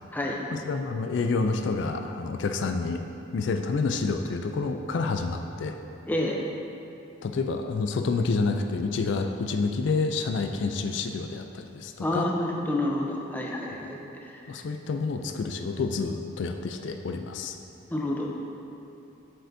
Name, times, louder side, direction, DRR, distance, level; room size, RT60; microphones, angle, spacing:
voice 1, 0.7-3.0 3.3-5.8 7.2-12.3 14.5-17.6, left 4 dB, 65° left, 5 dB, 0.3 m, -28 dB
voice 2, 6.0-6.4 12.0-14.4 17.9-18.3, left 1 dB, 10° left, -1 dB, 0.5 m, -29 dB
7.7 x 6.6 x 2.6 m, 2.8 s
head